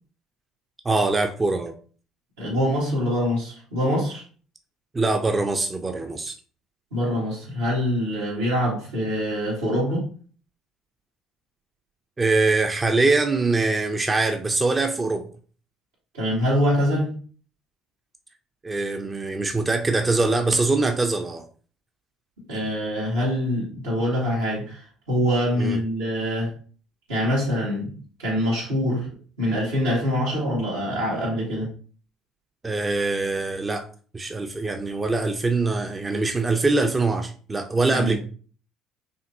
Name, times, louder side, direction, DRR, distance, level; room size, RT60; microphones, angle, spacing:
voice 1, 0.8-1.7 4.9-6.3 12.2-15.3 18.6-21.4 25.6-25.8 32.6-33.9 34.1-38.2, right 3 dB, 25° right, 5 dB, 0.5 m, -23 dB
voice 2, 2.4-4.2 6.9-10.1 16.1-17.1 22.5-26.5 27.1-29.1 29.4-31.7 37.9-38.2, equal, 90° right, -6 dB, 2.1 m, -24 dB
5.0 x 2.9 x 2.6 m, 0.42 s
hypercardioid pair, 65°, 0 cm